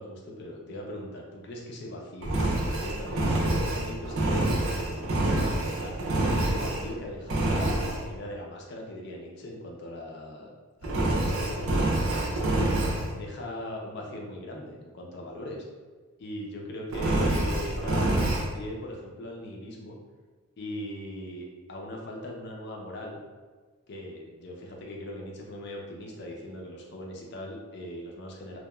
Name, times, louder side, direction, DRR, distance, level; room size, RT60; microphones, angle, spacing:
voice 1, 0.0-2.3 2.8-5.4 5.8-10.5 10.8-15.6 16.2-20.0 20.6-23.2 23.9-28.6, left 1 dB, 50° left, -1 dB, 0.5 m, -40 dB
Engine, 2.2-6.9 7.3-8.0 10.8-13.1 16.9-18.5, right 1 dB, 65° right, 0.5 m, -26 dB
2.8 x 2.2 x 2.2 m, 1.4 s
head